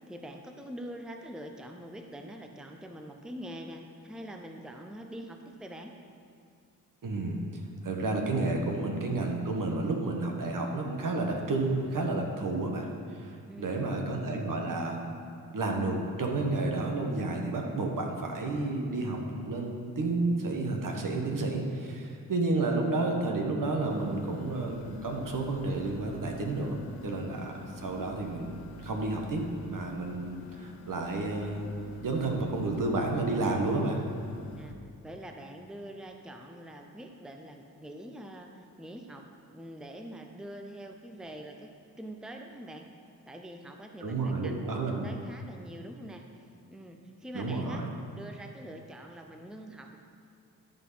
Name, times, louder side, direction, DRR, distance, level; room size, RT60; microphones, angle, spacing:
voice 1, 0.1-6.0 13.4-13.9 34.6-34.8 35.0-39.2 39.5-41.7 42.0-42.9 43.3-46.2 46.7-47.8 48.1-50.0, right 1 dB, ahead, 4 dB, 0.7 m, -44 dB
voice 2, 7.0-7.4 7.8-12.9 13.1-15.0 15.5-34.0 44.0-45.1 47.3-47.9, right 2 dB, 60° right, 1 dB, 1.4 m, -31 dB
sound 1, 23.9-34.7, left 2 dB, 80° left, 0.7 m, -48 dB
12.5 x 4.1 x 5.7 m, 2.2 s
supercardioid pair, 50°, 37 cm